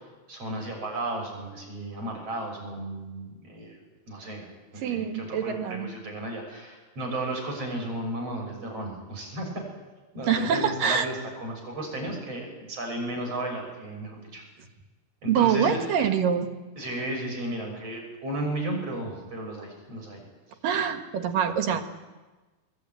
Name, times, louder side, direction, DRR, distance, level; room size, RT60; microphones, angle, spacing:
voice 1, 0.3-3.8 4.1-4.5 4.7-9.6 10.1-14.4 15.2-16.1 16.8-20.2, right 1 dB, 45° right, 2 dB, 7.4 m, -34 dB
voice 2, 4.7-5.9 10.3-11.1 15.3-16.5 20.6-21.8, right 7 dB, 75° right, 6 dB, 3.3 m, -25 dB
22.5 x 21.0 x 9.3 m, 1.2 s
omnidirectional pair, 4.0 m